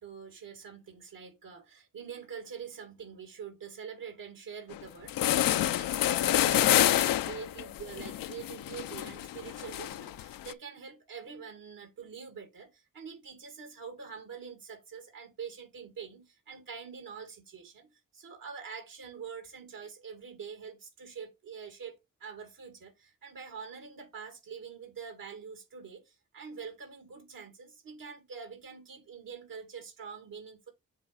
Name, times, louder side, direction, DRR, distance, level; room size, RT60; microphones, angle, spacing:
voice 1, 0.0-30.7, right 6 dB, 80° right, 2.5 m, -45 dB
sound 1, 4.7-4.8 5.1-10.5, left 13 dB, 90° left, 0.5 m, -28 dB
7.4 x 3.2 x 5.1 m
supercardioid pair, 50°, 33 cm